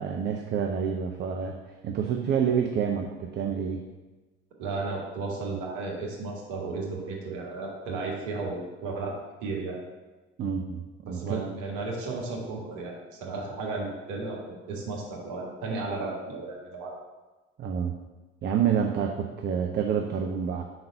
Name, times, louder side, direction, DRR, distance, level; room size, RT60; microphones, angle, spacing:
voice 1, 0.0-1.5 1.8-3.8 10.4-11.4 17.6-17.9 18.4-20.6, right 7 dB, 30° right, 3 dB, 0.6 m, -28 dB
voice 2, 4.6-9.1 9.4-9.8 11.1-16.9, right 3 dB, 55° right, -2 dB, 1.6 m, -34 dB
5.3 x 3.9 x 5.7 m, 1.2 s
figure-of-eight pair, 60°, 34 cm